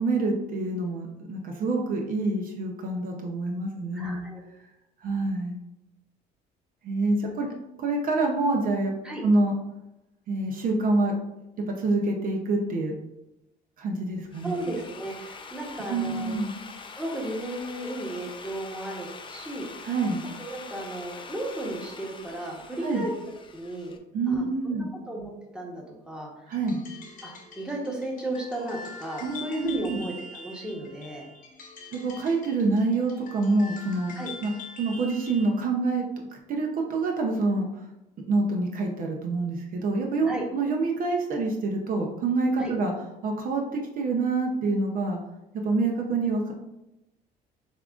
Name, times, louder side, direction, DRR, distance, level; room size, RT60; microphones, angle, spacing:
voice 1, 0.0-4.3 5.0-5.6 6.8-8.9 9.2-9.5 10.3-11.1 11.7-12.9 13.8-14.6 15.9-16.5 19.8-20.2 22.8-23.1 24.1-24.9 26.5-26.8 29.2-30.0 31.9-34.1 34.4-34.5 34.8-36.1 36.5-37.8 38.3-42.9 43.2-45.2 45.6-46.5, right 3 dB, 55° right, 1 dB, 0.6 m, -26 dB
voice 2, 3.9-4.4 7.2-7.4 9.0-9.2 14.4-16.3 17.0-19.7 20.4-23.1 23.5-23.9 24.3-26.3 27.2-31.3 34.1-34.3 40.2-40.4 42.6-42.7, right 1 dB, 5° right, -2 dB, 1.0 m, -34 dB
Drill, 14.1-24.0, left 4 dB, 30° left, 0.5 m, -44 dB
sound 1, 26.5-35.5, left 3 dB, 55° left, 1.0 m, -44 dB
7.1 x 2.4 x 2.4 m, 0.92 s
cardioid pair, 110°, 17 cm